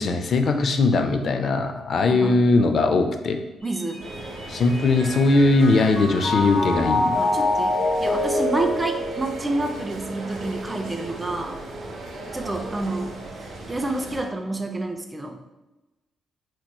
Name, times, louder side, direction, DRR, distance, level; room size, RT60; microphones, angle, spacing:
voice 1, 0.0-3.4 4.5-7.2, left 3 dB, 50° left, 6 dB, 0.4 m, -20 dB
voice 2, 2.0-2.4 3.6-4.1 7.2-11.6 12.3-13.2 13.7-15.4, right 2 dB, 15° right, 4 dB, 0.4 m, -29 dB
Mallet percussion, 3.7-10.1, left 1 dB, 80° left, 1.3 m, -26 dB
sound 1, 4.0-14.2, right 2 dB, 65° right, 0.8 m, -37 dB
4.3 x 2.9 x 2.2 m, 1.1 s
cardioid pair, 115°, 0 cm